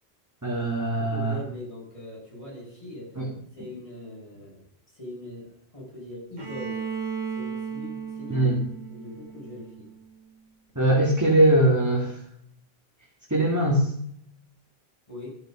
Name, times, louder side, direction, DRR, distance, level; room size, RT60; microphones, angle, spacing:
voice 1, 0.4-1.4 3.2-3.3 8.3-8.6 10.8-12.2 13.3-13.9, right 1 dB, 15° right, -3 dB, 2.5 m, -21 dB
voice 2, 0.9-3.2 3.5-6.8 7.3-8.6 8.9-9.9 15.1-15.3, left 1 dB, 30° left, -6 dB, 7.4 m, -41 dB
Bowed string instrument, 6.4-10.2, right 6 dB, 45° right, 2.2 m, -35 dB
14.0 x 7.7 x 6.4 m, 0.69 s
omnidirectional pair, 1.0 m